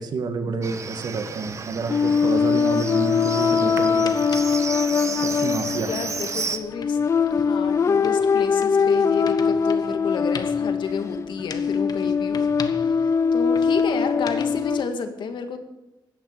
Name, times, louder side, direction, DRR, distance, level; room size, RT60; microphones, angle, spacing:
voice 1, 0.0-4.2 5.2-5.9, right 4 dB, 60° right, 7 dB, 2.2 m, -29 dB
Livestock farm animals working animals, 0.6-6.6, right 5 dB, 40° right, 1.2 m, -33 dB
sound 1, 1.9-14.8, left 6 dB, 35° left, 0.5 m, -22 dB
sound 2, 3.4-14.8, left 6 dB, 55° left, 1.4 m, -43 dB
voice 2, 5.8-7.0 7.3-15.6, left 5 dB, 75° left, 7 dB, 2.1 m, -31 dB
16.5 x 12.0 x 6.8 m, 0.96 s
wide cardioid pair, 165°, 8 cm